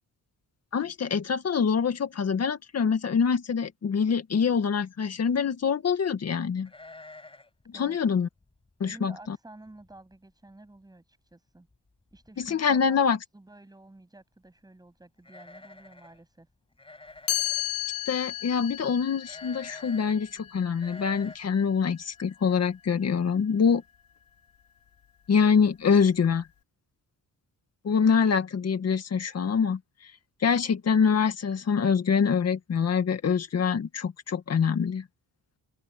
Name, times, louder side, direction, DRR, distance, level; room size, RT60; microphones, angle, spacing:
voice 1, 0.7-6.7 7.7-8.3 8.8-9.4 12.4-13.2 18.1-23.8 25.3-26.5 27.8-29.8 30.4-35.0, left 6 dB, 45° left, 2.0 m, -25 dB
sound 1, 6.6-7.6 7.9-8.0 8.4-8.7 9.3-9.4 9.7-10.2 10.5-10.6 11.7-11.8 12.1-12.5 15.2-16.2 16.8-17.7 19.2-20.2 20.8-21.4, left 2 dB, 15° left, 5.2 m, -48 dB
voice 2, 8.8-11.7 12.1-13.0 13.3-16.5, right 2 dB, 10° right, 7.6 m, -51 dB
Chime, 17.3-23.1, left 12 dB, 65° left, 2.6 m, -35 dB
open air
wide cardioid pair, 180°, 37 cm